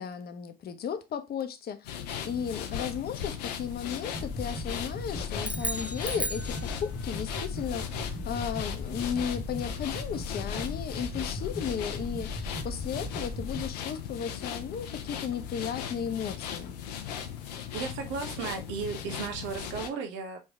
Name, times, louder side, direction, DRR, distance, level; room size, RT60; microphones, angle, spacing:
voice 1, 0.0-16.8, left 8 dB, 50° left, 0.8 m, -35 dB
sound 1, 1.8-19.9, left 8 dB, 85° left, 0.6 m, -38 dB
sound 2, 4.1-13.7, left 2 dB, 10° left, 1.3 m, -37 dB
sound 3, 5.4-7.2, right 1 dB, 5° right, 0.4 m, -35 dB
voice 2, 17.3-20.4, right 6 dB, 70° right, 0.8 m, -36 dB
4.4 x 3.3 x 3.5 m
hypercardioid pair, 50°, 20 cm